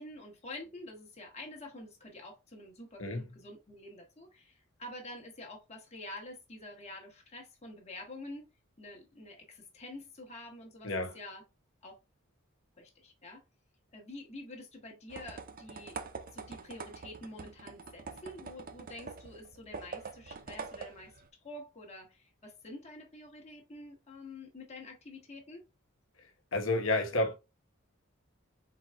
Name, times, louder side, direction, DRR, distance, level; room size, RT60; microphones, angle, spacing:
voice 1, 0.0-8.4 8.8-11.4 11.8-12.0 12.8-13.4 13.9-16.0 16.3-25.6, left 1 dB, 30° left, 1.3 m, -48 dB
voice 2, 10.8-11.2 26.5-27.3, left 2 dB, 70° left, 1.1 m, -30 dB
sound 1, 15.1-21.3, right 4 dB, 40° right, 0.5 m, -45 dB
4.6 x 4.0 x 2.3 m
head